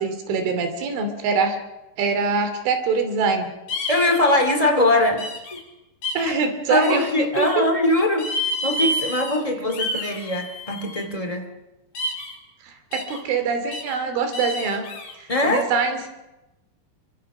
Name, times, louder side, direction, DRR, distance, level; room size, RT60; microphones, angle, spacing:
voice 1, 0.0-1.6 2.0-3.5 6.2-7.6 12.6-14.9 15.2-16.1, right 5 dB, 85° right, 7 dB, 5.3 m, -24 dB
sound 1, 3.7-4.2 5.2-5.6 6.0-6.3 6.8-7.6 8.2-9.4 9.7-11.0 11.9-12.3 12.9-13.2 13.7-14.0 14.3-15.1, left 1 dB, 60° left, 6.3 m, -29 dB
voice 2, 3.9-5.3 5.5-5.6 6.2-6.3 6.7-8.3 8.6-11.5 15.3-15.6, left 1 dB, 20° left, 5 dB, 0.9 m, -21 dB
28.5 x 24.0 x 6.1 m, 0.99 s
omnidirectional pair, 5.4 m